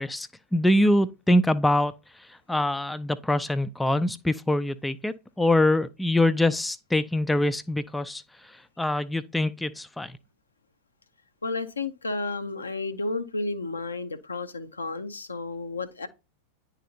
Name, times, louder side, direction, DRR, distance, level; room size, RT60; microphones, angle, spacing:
voice 1, 0.0-1.9 2.3-10.2, left 1 dB, 5° left, 0.4 m, -24 dB
voice 2, 11.4-16.1, left 3 dB, 75° left, 0.7 m, -32 dB
10.0 x 4.1 x 2.7 m
figure-of-eight pair, 90°, 0 cm